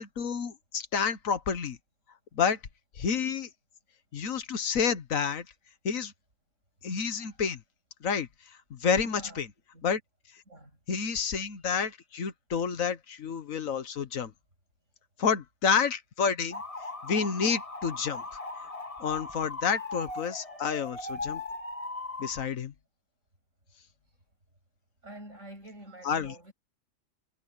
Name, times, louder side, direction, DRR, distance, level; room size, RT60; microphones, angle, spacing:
voice 1, 0.0-1.8 2.4-2.6 3.0-3.5 4.1-5.4 5.8-6.1 6.8-7.6 8.0-8.3 8.7-9.5 9.8-10.0 10.9-14.3 15.2-16.6 17.0-18.2 19.0-21.4 22.2-22.7 26.0-26.3, left 6 dB, 85° left, 1.6 m, -29 dB
voice 2, 9.0-9.4 9.7-9.9 10.5-10.8 25.0-26.5, right 1 dB, 70° right, 8.1 m, -47 dB
sound 1, 16.5-22.5, left 2 dB, 25° left, 1.7 m, -38 dB
omnidirectional pair, 1.4 m